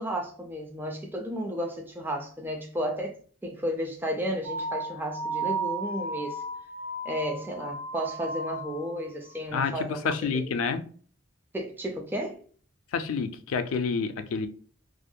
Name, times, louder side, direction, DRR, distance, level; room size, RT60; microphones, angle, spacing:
voice 1, 0.0-6.4 7.0-10.6 11.5-12.4, equal, 10° right, 0.4 m, -33 dB
sound 1, 4.4-9.1, right 2 dB, 60° right, 1.1 m, -34 dB
voice 2, 9.5-10.8 12.9-14.5, left 5 dB, 85° left, 0.4 m, -28 dB
2.4 x 2.2 x 2.6 m
head